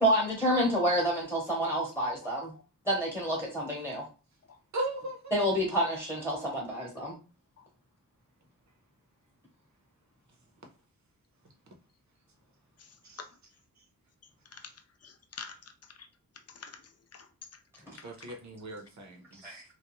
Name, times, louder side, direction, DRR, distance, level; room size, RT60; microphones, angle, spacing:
voice 1, 0.0-2.5 2.8-4.0 5.3-7.2 17.9-18.0 19.4-19.6, equal, 5° left, 0.9 m, -28 dB
voice 2, 4.7-5.3 13.0-13.2 18.0-19.6, right 1 dB, 55° right, 0.8 m, -38 dB
voice 3, 12.8-13.3 14.5-14.7 15.0-15.7 16.0-16.1 16.5-17.3 18.0-18.1, left 5 dB, 45° left, 0.5 m, -47 dB
2.3 x 2.2 x 3.0 m
wide cardioid pair, 90°, 34 cm